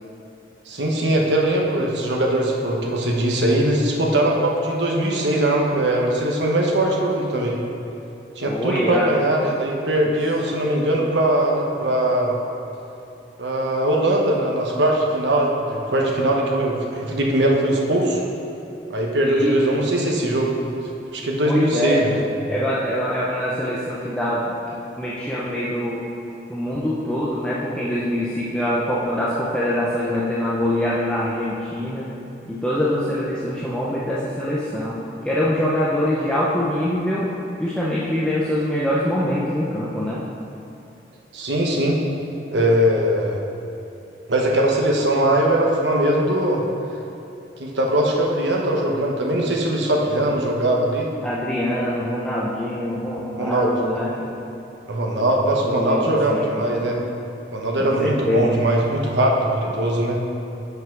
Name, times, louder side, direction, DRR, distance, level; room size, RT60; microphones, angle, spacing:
voice 1, 0.7-7.6 8.4-12.3 13.4-18.2 18.9-20.6 21.1-22.2 41.3-42.0 42.5-43.4 44.3-46.6 47.6-51.1 53.4-53.7 54.9-57.0 57.5-60.2, right 1 dB, 80° right, -1 dB, 1.1 m, -21 dB
voice 2, 8.4-9.1 19.2-19.6 21.4-22.0 22.5-26.0 26.5-32.1 32.5-40.2 51.2-54.1 55.6-56.5 57.8-58.5, left 1 dB, 5° left, -7 dB, 0.6 m, -24 dB
5.7 x 5.6 x 5.9 m, 2.9 s
head